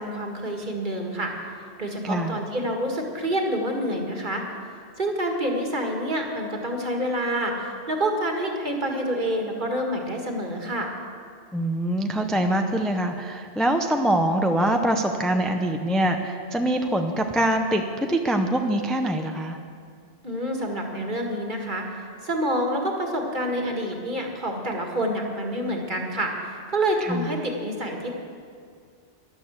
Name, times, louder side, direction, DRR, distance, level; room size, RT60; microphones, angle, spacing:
voice 1, 0.0-1.3 1.8-4.4 5.0-10.9 20.2-21.9 22.2-26.3 26.7-28.2, right 1 dB, 40° right, 1 dB, 2.0 m, -27 dB
voice 2, 2.0-2.4 11.5-19.6 27.0-27.4, right 1 dB, ahead, 4 dB, 0.6 m, -24 dB
13.0 x 12.0 x 7.4 m, 2.3 s
omnidirectional pair, 1.2 m